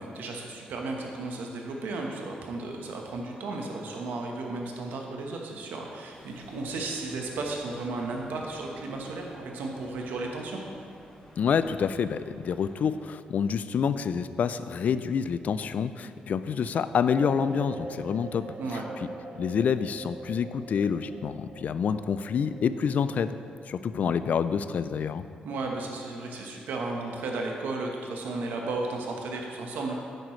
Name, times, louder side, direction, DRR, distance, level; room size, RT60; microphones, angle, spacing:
voice 1, 0.0-10.6 18.6-18.9 25.4-30.0, right 3 dB, 90° right, 1 dB, 1.1 m, -34 dB
sound 1, 6.1-13.0, left 1 dB, 20° left, 2.2 m, -52 dB
voice 2, 11.4-18.5 19.4-23.4 23.7-25.2, left 7 dB, 55° left, 12 dB, 0.3 m, -27 dB
sound 2, 17.2-24.8, right 3 dB, 45° right, 0.6 m, -43 dB
9.5 x 7.7 x 3.2 m, 2.3 s
cardioid pair, 115°, 3 cm